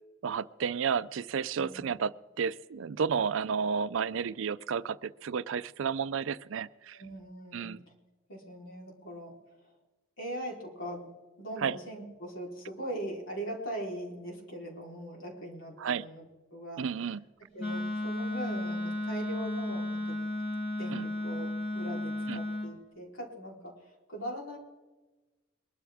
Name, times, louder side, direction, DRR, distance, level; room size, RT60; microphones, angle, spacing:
voice 1, 0.2-7.0 7.5-7.8 11.6-11.7 15.8-16.0 16.8-17.2 20.9-21.1 22.3-22.4, right 6 dB, 70° right, 18 dB, 0.4 m, -32 dB
voice 2, 1.6-1.9 6.9-7.9 8.3-9.3 10.2-11.1 11.4-16.2 16.5-17.2 17.5-20.2 20.8-24.6, right 1 dB, 70° left, -1 dB, 3.9 m, -41 dB
Wind instrument woodwind instrument, 17.6-22.7, left 1 dB, 50° left, 4.5 m, -34 dB
22.0 x 12.5 x 3.5 m, 1.2 s
head